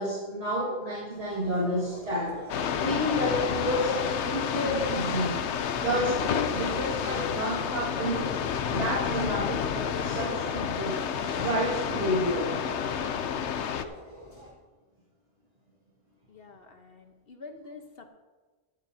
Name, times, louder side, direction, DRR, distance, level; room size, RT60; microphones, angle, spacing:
voice 1, 0.0-2.4 2.8-5.4 5.8-8.3 8.7-11.1 11.4-12.6, equal, 60° right, -5 dB, 2.2 m, -30 dB
sound 1, 1.1-14.5, equal, 35° left, 3.8 m, -46 dB
sound 2, 2.5-13.8, left 8 dB, 70° left, 0.9 m, -30 dB
voice 2, 16.3-18.1, left 4 dB, 55° left, 5 dB, 1.2 m, -47 dB
15.5 x 11.5 x 2.8 m, 1.3 s
omnidirectional pair, 1.2 m